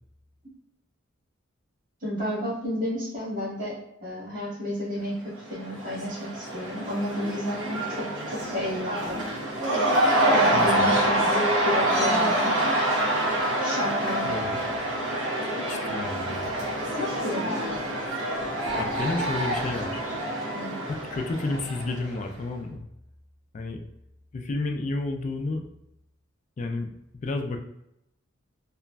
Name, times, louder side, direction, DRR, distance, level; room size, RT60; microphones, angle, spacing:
voice 1, 2.0-3.7 4.0-9.2 10.3-12.5 13.6-14.4 17.0-17.8 18.7-18.8 20.5-20.7, left 1 dB, 45° right, -8 dB, 1.5 m, -31 dB
Cheering / Crowd, 5.4-22.3, right 1 dB, 65° right, 0.8 m, -26 dB
voice 2, 10.5-11.0 14.2-14.6 15.7-16.6 18.8-20.0 20.9-22.9 23.5-23.8 24.3-25.7 26.6-27.6, left 2 dB, 40° left, 5 dB, 0.3 m, -31 dB
3.0 x 2.4 x 2.2 m, 0.82 s
head